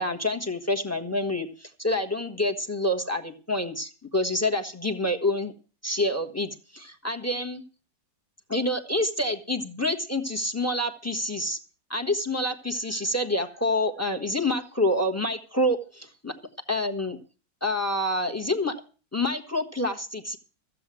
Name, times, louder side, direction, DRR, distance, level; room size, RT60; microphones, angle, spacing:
voice 1, 0.0-5.5 5.8-7.6 8.5-11.6 11.9-16.3 16.7-17.2 17.6-18.7 19.1-20.4, left 1 dB, 10° left, 7 dB, 1.1 m, -27 dB
14.5 x 7.7 x 7.6 m, 0.37 s
omnidirectional pair, 2.1 m